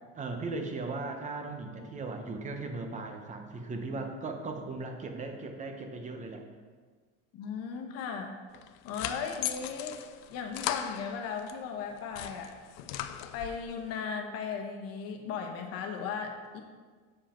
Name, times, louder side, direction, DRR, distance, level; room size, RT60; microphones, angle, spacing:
voice 1, 0.2-6.4, right 3 dB, 25° right, 4 dB, 0.8 m, -37 dB
voice 2, 7.3-8.4 8.8-10.0 10.3-12.5 13.3-16.6, left 6 dB, 55° left, 4 dB, 1.1 m, -36 dB
sound 1, 8.5-11.6 12.0-13.7, left 12 dB, 90° left, 0.5 m, -38 dB
7.5 x 5.1 x 4.4 m, 1.5 s
cardioid pair, 140°, 29 cm